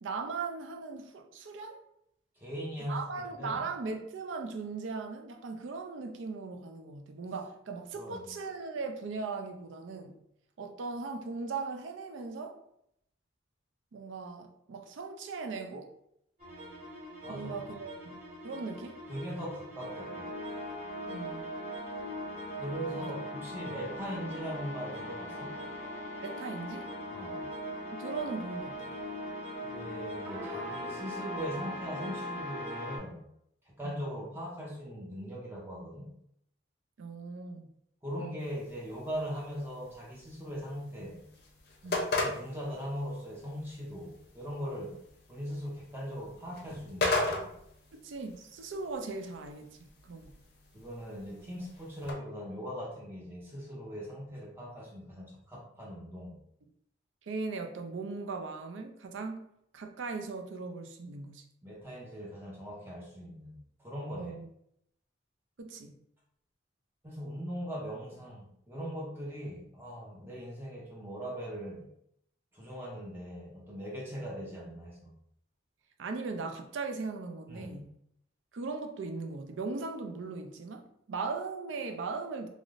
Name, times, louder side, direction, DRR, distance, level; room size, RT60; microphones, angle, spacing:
voice 1, 0.0-1.8 2.8-10.2 10.6-12.6 13.9-15.9 17.3-18.2 18.4-19.0 21.1-21.5 23.0-23.1 26.2-26.9 27.9-29.0 33.8-34.0 37.0-37.7 38.2-38.4 41.8-42.2 47.9-50.4 57.2-61.5 64.2-64.5 65.6-66.0 76.0-77.9 78.5-82.5, right 4 dB, 80° right, 0.4 m, -39 dB
voice 2, 2.4-3.6 7.9-8.4 17.2-17.6 19.1-20.3 22.6-25.6 27.1-27.5 29.7-33.2 33.7-36.1 38.0-41.2 42.2-45.0 45.3-47.5 50.7-56.3 61.6-64.3 67.0-71.9 72.5-75.2 77.5-77.8, equal, 10° right, 0.5 m, -40 dB
sound 1, 16.4-33.0, left 1 dB, 35° right, 1.2 m, -40 dB
sound 2, 38.4-52.1, left 2 dB, 55° left, 0.6 m, -39 dB
3.3 x 2.5 x 2.5 m
head